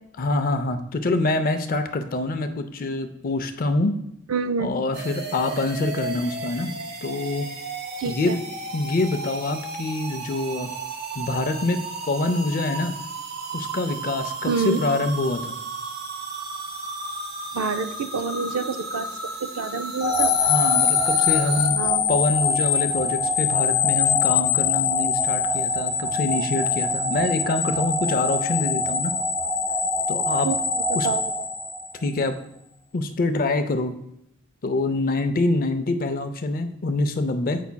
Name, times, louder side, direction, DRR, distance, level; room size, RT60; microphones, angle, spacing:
voice 1, 0.2-3.9 4.6-6.7 7.0-7.5 8.0-8.4 8.7-10.7 11.1-12.9 13.5-15.6 20.4-21.8 22.1-29.1 30.1-30.5 30.9-31.1 32.0-32.3 32.9-33.9 34.6-37.6, left 2 dB, 40° left, 8 dB, 0.4 m, -25 dB
voice 2, 4.3-4.7 8.0-8.3 14.5-14.8 17.5-19.1 19.4-20.3 21.8-22.1 30.4-30.6 31.0-31.2, right 5 dB, 80° right, 11 dB, 0.4 m, -27 dB
sound 1, 4.9-21.7, right 2 dB, 50° right, 0.7 m, -34 dB
sound 2, 20.0-32.2, left 5 dB, 80° left, 0.7 m, -23 dB
8.1 x 5.6 x 2.2 m, 0.78 s
head